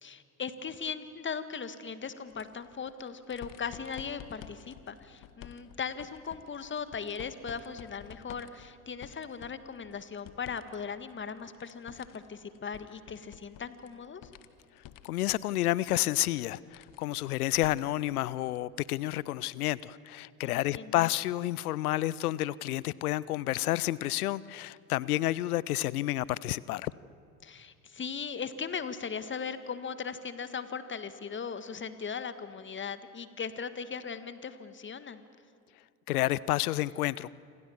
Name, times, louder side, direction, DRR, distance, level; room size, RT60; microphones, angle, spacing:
voice 1, 0.0-14.2 20.4-21.1 27.4-35.2, left 6 dB, 25° left, 12 dB, 1.7 m, -38 dB
sound 1, 2.3-10.8 11.1-18.1 18.5-18.6 19.8-19.9, left 10 dB, 45° left, 1.6 m, -52 dB
voice 2, 15.0-26.9 36.1-37.3, left 15 dB, 75° left, 22 dB, 0.7 m, -30 dB
28.0 x 26.0 x 7.2 m, 2.4 s
figure-of-eight pair, 65°, 45 cm